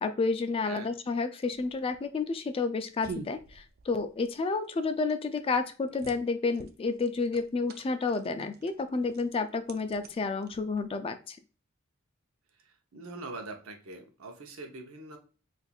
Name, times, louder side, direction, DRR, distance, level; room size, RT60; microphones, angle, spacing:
voice 1, 0.0-11.4, left 4 dB, 25° left, 9 dB, 0.3 m, -30 dB
sound 1, 1.5-11.0, right 4 dB, 50° right, 0.4 m, -48 dB
voice 2, 12.9-15.2, right 3 dB, 90° right, 4 dB, 0.7 m, -43 dB
4.2 x 2.5 x 2.3 m, 0.35 s
head